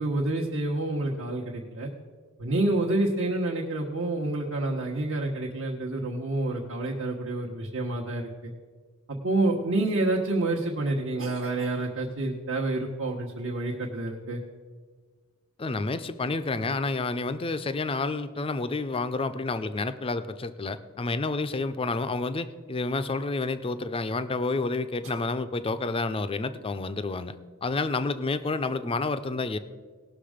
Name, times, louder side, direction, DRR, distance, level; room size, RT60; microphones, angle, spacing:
voice 1, 0.0-1.9 2.4-8.5 9.1-14.4, right 2 dB, 65° right, -2 dB, 1.1 m, -28 dB
voice 2, 15.6-29.6, left 3 dB, 25° left, 11 dB, 0.5 m, -29 dB
18.0 x 6.3 x 5.0 m, 1.5 s
head